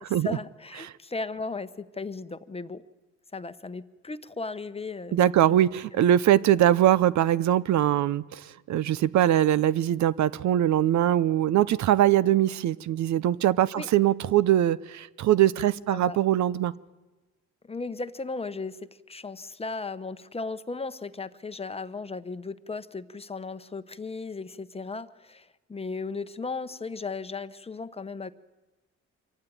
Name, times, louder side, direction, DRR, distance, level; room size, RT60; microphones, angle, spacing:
voice 1, 0.2-2.8 3.3-5.6 5.9-6.0 13.7-13.9 15.9-16.2 17.7-28.3, left 3 dB, 20° left, 12 dB, 0.9 m, -36 dB
voice 2, 5.1-8.4 8.7-16.7, right 12 dB, 70° right, 19 dB, 0.7 m, -22 dB
25.0 x 15.0 x 9.3 m, 1.2 s
cardioid pair, 90°, 30 cm